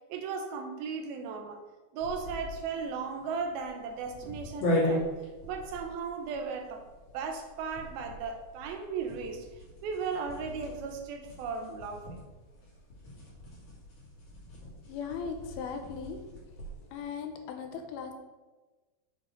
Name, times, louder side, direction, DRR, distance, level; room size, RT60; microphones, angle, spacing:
voice 1, 0.1-1.6 1.9-5.1 5.5-6.8 7.1-9.5 9.8-12.2, right 5 dB, 80° right, 5 dB, 2.7 m, -36 dB
sound 1, 2.0-16.9, left 1 dB, 55° left, 3.7 m, -38 dB
voice 2, 14.9-16.2 16.9-18.1, left 6 dB, 85° left, 5 dB, 2.7 m, -38 dB
7.6 x 7.2 x 3.9 m, 1.2 s
omnidirectional pair, 4.4 m